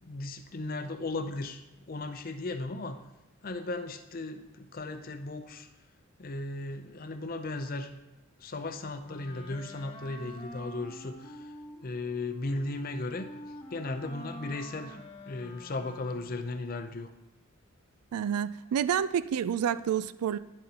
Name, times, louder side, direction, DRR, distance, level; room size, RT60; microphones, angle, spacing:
voice 1, 0.0-3.0 3.4-5.7 6.2-7.9 8.4-11.5 11.8-13.3 13.7-15.0 15.3-17.1, left 2 dB, 40° left, 0.5 m, -36 dB
Wind instrument woodwind instrument, 9.0-16.5, equal, 25° left, 1.0 m, -47 dB
voice 2, 18.1-20.4, right 8 dB, 85° right, 0.3 m, -29 dB
10.5 x 7.5 x 2.9 m
head